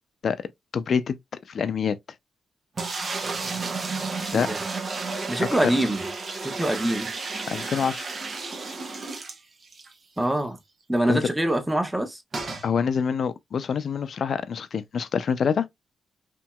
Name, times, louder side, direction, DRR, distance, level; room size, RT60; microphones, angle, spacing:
voice 1, 0.7-1.2 1.5-2.0 4.3-4.5 5.4-5.7 7.5-8.1 11.1-11.3 12.6-15.7, left 6 dB, 60° left, 0.4 m, -26 dB
Pouring Water (Long), 2.8-9.9 10.3-10.4 10.6-10.7 12.3-12.7, right 4 dB, 50° right, 0.8 m, -32 dB
voice 2, 5.3-6.0 6.4-7.1 10.2-10.6 10.9-12.2, right 1 dB, 10° right, 0.9 m, -24 dB
2.9 x 2.8 x 2.2 m
cardioid pair, 60°, 0 cm